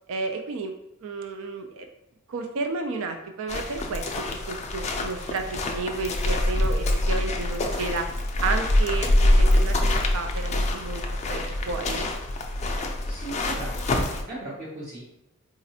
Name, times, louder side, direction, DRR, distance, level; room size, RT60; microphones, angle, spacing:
voice 1, 0.1-0.7 1.0-1.9 2.3-8.1 8.4-12.1, right 3 dB, 65° right, 5 dB, 0.4 m, -32 dB
sound 1, 3.5-14.2, left 1 dB, 30° left, 0.4 m, -25 dB
voice 2, 13.1-15.0, right 2 dB, 40° right, -8 dB, 0.8 m, -37 dB
4.0 x 2.5 x 2.7 m, 0.84 s
head